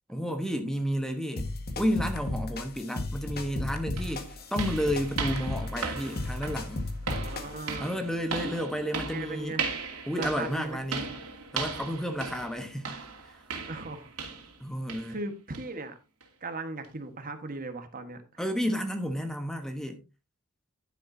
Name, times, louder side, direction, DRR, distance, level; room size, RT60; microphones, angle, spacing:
voice 1, 0.1-1.5 1.8-6.9 7.8-9.6 10.1-11.1 11.5-13.0 13.3-13.4 14.6-15.2 18.4-20.0, equal, ahead, 1.1 m, -31 dB
sound 1, 1.4-7.7, left 2 dB, 45° left, 1.6 m, -35 dB
sound 2, 3.4-3.5 4.0-14.6 14.9-15.2 15.5-15.7 16.2-16.3 16.8-16.9, right 5 dB, 85° right, 2.6 m, -37 dB
voice 2, 7.1-8.0 9.0-9.7 10.1-10.8 13.7-14.1 15.1-16.0 16.4-18.4, right 2 dB, 40° right, 1.4 m, -38 dB
11.0 x 10.0 x 2.7 m
head